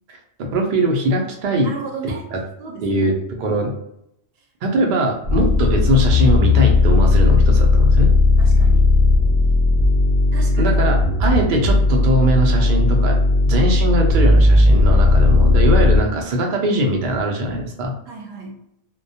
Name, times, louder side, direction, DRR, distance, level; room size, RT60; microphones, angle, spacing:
voice 1, 0.1-1.7 2.3-2.4 2.8-3.1 3.4-3.7 4.6-8.1 10.6-13.2 13.5-17.9, right 1 dB, 90° right, 1 dB, 0.4 m, -20 dB
voice 2, 1.6-3.1 5.4-5.6 8.4-8.9 10.3-10.8 18.1-18.6, right 4 dB, 60° right, 1 dB, 0.7 m, -34 dB
sound 1, 5.2-16.0, left 3 dB, 60° left, 0.6 m, -15 dB
2.2 x 2.2 x 2.6 m, 0.77 s
omnidirectional pair, 1.4 m